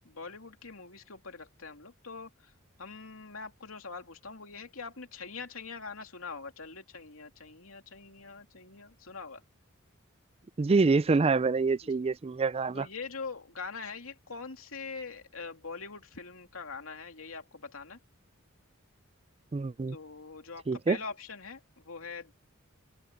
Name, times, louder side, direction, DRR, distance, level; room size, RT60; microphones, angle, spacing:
voice 1, 0.0-2.5 2.8-9.4 11.9-12.0 12.7-18.0 19.9-22.3, left 4 dB, 85° left, 2.7 m, -43 dB
voice 2, 10.6-12.9 19.5-20.0 20.7-21.0, right 4 dB, 30° right, 0.4 m, -26 dB
open air
head